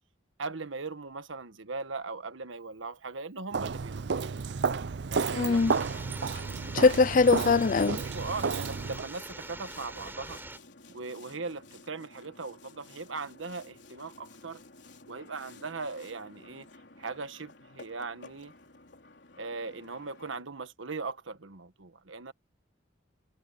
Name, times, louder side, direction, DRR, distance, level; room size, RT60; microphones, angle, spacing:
voice 1, 0.4-4.2 5.1-6.0 8.1-10.4 10.9-14.6 15.1-16.7 17.0-18.5 19.4-22.3, right 4 dB, 90° right, 1.4 m, -39 dB
Walk footsteps, 3.5-9.1, right 5 dB, 60° right, 0.5 m, -32 dB
voice 2, 5.3-5.7 6.7-8.0, left 4 dB, 45° left, 0.4 m, -22 dB
sound 1, 5.5-10.6, right 2 dB, 10° right, 4.4 m, -44 dB
Boat Water vehicle, 5.6-20.4, left 3 dB, 65° left, 4.3 m, -53 dB
head